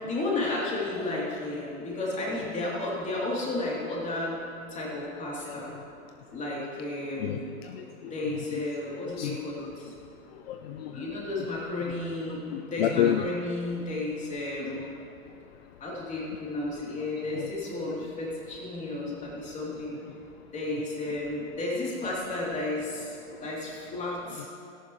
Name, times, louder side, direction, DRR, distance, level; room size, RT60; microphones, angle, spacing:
voice 1, 0.0-4.4 4.7-5.7 6.3-7.5 8.0-9.9 10.9-14.9 15.8-20.0 20.5-24.5, left 2 dB, 15° left, -5 dB, 3.4 m, -33 dB
voice 2, 7.2-7.8 9.2-9.4 10.5-11.0 12.5-13.2 19.1-19.2, left 10 dB, 45° left, 6 dB, 0.6 m, -29 dB
17.0 x 14.0 x 3.2 m, 2.6 s
hypercardioid pair, 135°, 43 cm